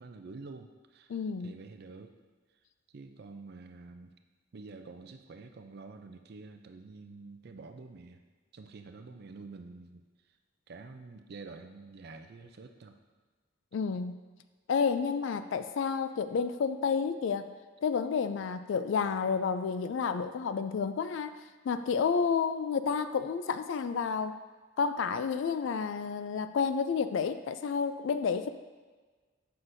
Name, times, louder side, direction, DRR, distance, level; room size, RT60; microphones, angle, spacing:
voice 1, 0.0-1.1 1.4-2.1 2.9-4.1 4.5-8.2 8.5-10.0 10.7-13.0, right 3 dB, 50° right, 7 dB, 0.4 m, -48 dB
voice 2, 1.1-1.5 13.7-14.1 14.7-17.5 17.8-24.4 24.8-28.5, left 6 dB, 65° left, 10 dB, 0.3 m, -30 dB
7.8 x 5.7 x 2.6 m, 1.3 s
head